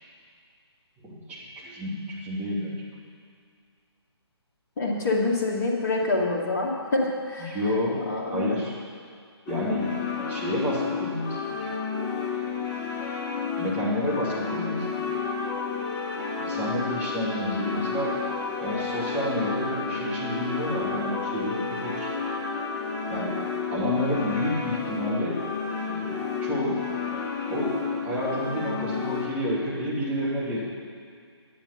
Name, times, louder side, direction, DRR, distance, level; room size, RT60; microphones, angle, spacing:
voice 1, 1.0-2.7 7.4-8.0 8.3-8.7 9.5-11.4 13.5-15.0 16.4-18.2 18.6-22.1 23.1-23.3 23.7-25.4 25.9-26.8 27.5-27.8 28.0-30.6, equal, 10° right, -8 dB, 2.5 m, -30 dB
voice 2, 4.8-7.6 8.1-8.6, left 2 dB, 35° left, -2 dB, 2.2 m, -26 dB
sound 1, 9.5-29.3, left 5 dB, 15° left, 1.1 m, -31 dB
10.0 x 9.9 x 5.8 m, 2.2 s
figure-of-eight pair, 140°, 14 cm